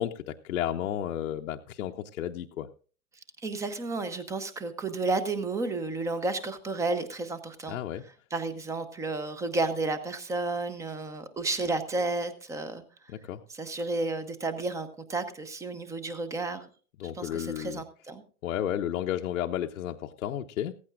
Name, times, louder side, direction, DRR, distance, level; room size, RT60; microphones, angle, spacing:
voice 1, 0.0-2.7 7.7-8.0 13.1-13.4 17.0-17.8 18.4-20.7, left 11 dB, 65° left, 3 dB, 0.8 m, -32 dB
voice 2, 3.4-7.8 8.3-12.8 13.5-16.7 17.0-18.2, right 3 dB, 5° right, 12 dB, 0.7 m, -32 dB
15.5 x 15.0 x 2.5 m, 0.40 s
hypercardioid pair, 130°, 45 cm